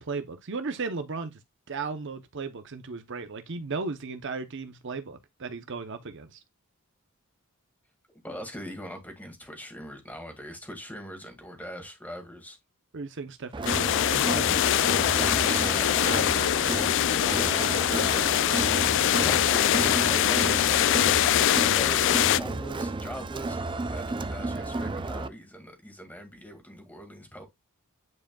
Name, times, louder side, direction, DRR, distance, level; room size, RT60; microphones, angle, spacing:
voice 1, 0.0-1.4 1.7-6.4 12.9-14.6, right 4 dB, 55° right, 0.7 m, -35 dB
voice 2, 8.2-12.6 15.2-18.3 19.2-21.0 21.5-27.4, equal, 5° left, 2.0 m, -41 dB
Crowd, 13.5-25.3, right 2 dB, 20° right, 0.4 m, -32 dB
sound 1, 13.7-22.4, left 12 dB, 55° left, 0.3 m, -23 dB
9.5 x 5.1 x 2.3 m
head